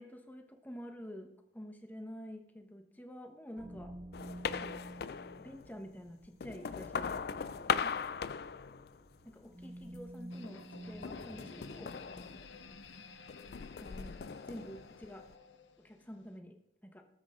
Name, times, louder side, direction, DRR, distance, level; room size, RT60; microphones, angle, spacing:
voice 1, 0.0-3.9 4.6-4.8 5.4-7.3 7.8-8.2 9.2-11.9 13.8-15.3 15.8-16.6 16.8-17.0, equal, 10° left, 5 dB, 1.1 m, -49 dB
sound 1, 3.6-12.7, right 1 dB, 20° right, 1.3 m, -51 dB
sound 2, 4.1-5.7 6.2-9.2 9.6-10.2 11.0-12.9 13.3-15.3, left 6 dB, 55° left, 0.4 m, -39 dB
sound 3, 10.3-16.4, left 4 dB, 80° left, 0.9 m, -54 dB
19.0 x 8.2 x 3.7 m, 0.80 s
head